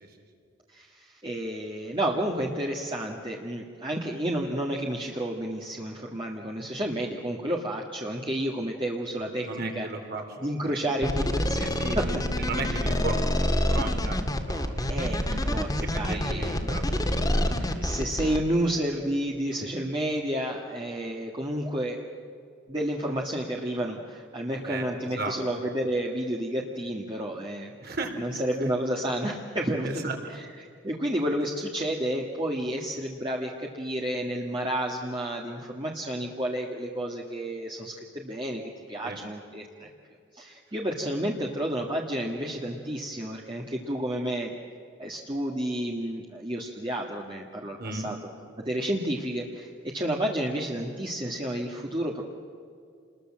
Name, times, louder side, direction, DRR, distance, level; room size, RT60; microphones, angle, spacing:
voice 1, 0.7-9.9 10.4-12.1 12.6-12.8 14.9-16.6 17.5-22.0 22.7-30.1 30.3-30.4 30.8-39.9 40.3-44.5 45.0-48.2 48.6-52.2, right 1 dB, 25° right, -1 dB, 1.8 m, -31 dB
voice 2, 9.1-11.1 11.8-18.0 24.6-25.4 27.8-28.7 29.8-30.2 39.0-39.2 47.8-48.1, right 2 dB, 55° right, 4 dB, 3.6 m, -36 dB
sound 1, 11.0-18.4, left 1 dB, 20° left, 1.9 m, -27 dB
29.0 x 21.0 x 7.5 m, 2.4 s
head